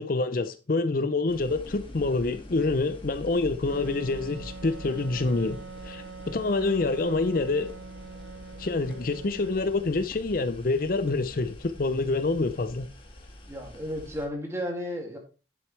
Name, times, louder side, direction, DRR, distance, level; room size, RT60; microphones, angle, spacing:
voice 1, 0.0-5.6 5.8-7.7 8.6-12.9, left 3 dB, 50° left, 0.5 m, -27 dB
sound 1, 1.3-14.3, left 1 dB, 25° left, 2.0 m, -45 dB
Wind instrument woodwind instrument, 3.7-10.1, right 4 dB, 75° right, 0.6 m, -44 dB
voice 2, 13.5-15.2, equal, 15° right, 2.3 m, -33 dB
10.0 x 7.7 x 3.3 m
head